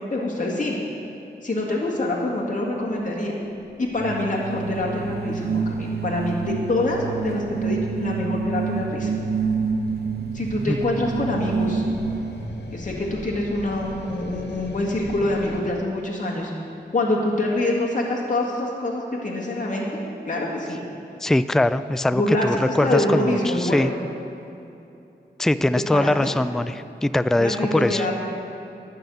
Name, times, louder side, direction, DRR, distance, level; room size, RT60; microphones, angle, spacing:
voice 1, 0.1-0.8 1.4-3.3 3.8-9.1 10.3-11.9 12.7-16.5 16.9-20.8 22.1-23.9 25.9-26.3 27.4-28.1, left 1 dB, 45° left, -3 dB, 1.9 m, -25 dB
sound 1, 3.4-15.6, left 2 dB, 65° left, 1.0 m, -41 dB
sound 2, 4.0-12.6, right 5 dB, 60° right, 0.8 m, -28 dB
voice 2, 21.2-23.9 25.4-28.0, left 1 dB, ahead, 13 dB, 0.3 m, -22 dB
11.0 x 5.7 x 7.7 m, 2.8 s
cardioid pair, 50°, 18 cm